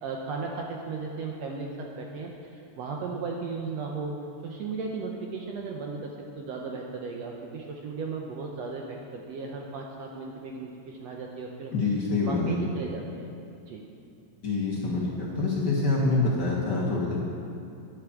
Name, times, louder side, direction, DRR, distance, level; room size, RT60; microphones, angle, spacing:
voice 1, 0.0-4.1 4.4-11.7 12.3-13.3 13.7-13.8, right 4 dB, 70° right, 0 dB, 1.7 m, -36 dB
voice 2, 11.7-12.6 14.4-17.2, left 3 dB, 50° left, -4 dB, 1.3 m, -26 dB
9.9 x 8.2 x 7.1 m, 2.7 s
omnidirectional pair, 3.7 m